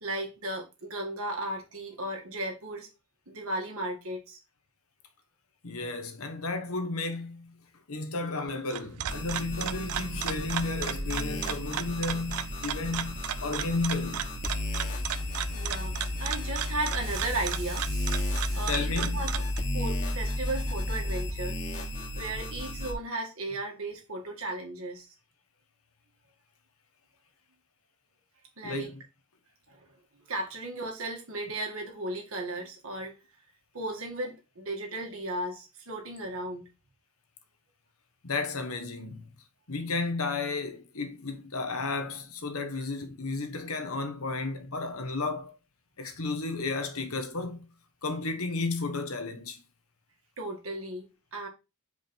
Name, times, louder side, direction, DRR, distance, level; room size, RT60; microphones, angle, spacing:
voice 1, 0.0-2.9 3.3-4.4 15.5-19.4 19.7-21.6 22.1-25.1 28.6-28.9 29.7-29.8 30.1-33.2 33.7-36.7 50.4-51.5, right 2 dB, 65° right, 2.0 m, -35 dB
voice 2, 5.6-7.6 7.9-14.3 18.5-19.4 28.6-28.9 38.2-39.3 39.7-45.6 46.0-47.7 48.0-49.6, left 3 dB, 70° left, 1.2 m, -33 dB
sound 1, 8.5-19.6, right 10 dB, 90° right, 0.5 m, -36 dB
sound 2, 9.1-22.9, left 1 dB, 35° left, 1.5 m, -33 dB
5.0 x 4.5 x 5.3 m
head